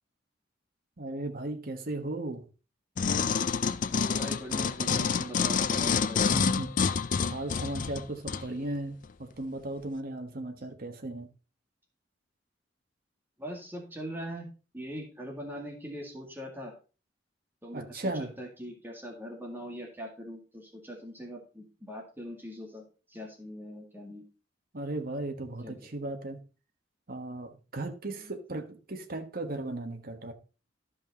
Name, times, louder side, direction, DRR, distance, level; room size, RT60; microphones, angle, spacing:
voice 1, 1.0-2.5 6.2-6.7 7.3-11.3 17.7-18.4 24.7-26.4 27.1-30.3, right 2 dB, 50° right, 1.3 m, -36 dB
sound 1, 3.0-8.5 9.0-9.1, left 6 dB, 45° left, 0.4 m, -28 dB
voice 2, 4.0-6.2 13.4-14.5 14.7-16.7 17.6-24.2 25.6-25.9 28.2-28.3, equal, 10° right, 2.0 m, -42 dB
12.5 x 5.4 x 4.1 m
head